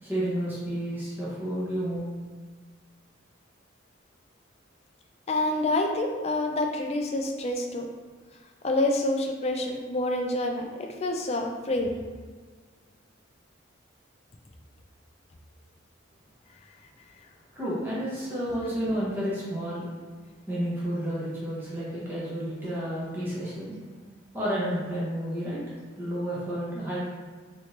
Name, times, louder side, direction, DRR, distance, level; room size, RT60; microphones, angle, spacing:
voice 1, 0.0-2.1 17.5-19.8 20.5-23.7 24.3-25.6 26.0-27.1, equal, 10° right, -8 dB, 1.0 m, -31 dB
voice 2, 5.3-7.9 8.6-11.9, left 2 dB, 30° left, 3 dB, 0.3 m, -27 dB
3.2 x 3.1 x 2.8 m, 1.5 s
head